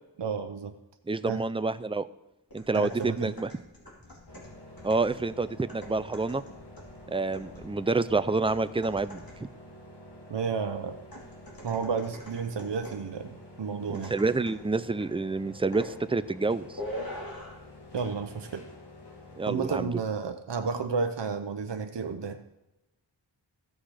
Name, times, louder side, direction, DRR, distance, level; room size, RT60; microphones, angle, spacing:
voice 1, 0.2-0.7 1.3-1.5 2.7-3.3 10.3-11.0 11.6-14.1 17.9-18.7 19.5-22.4, right 5 dB, 70° right, 7 dB, 0.8 m, -32 dB
voice 2, 1.1-2.1 2.5-3.5 4.8-6.4 7.1-9.2 13.9-16.8 19.4-19.9, right 3 dB, 15° right, 14 dB, 0.4 m, -28 dB
sound 1, 2.5-9.6 11.1-13.1 13.9-14.7 15.0-15.2 15.7-16.0 16.8-17.7 18.0-18.2, left 1 dB, 50° left, 2.6 m, -44 dB
sound 2, 4.3-19.8, left 1 dB, 65° left, 2.4 m, -49 dB
14.5 x 6.4 x 4.9 m, 0.95 s
wide cardioid pair, 40°, 44 cm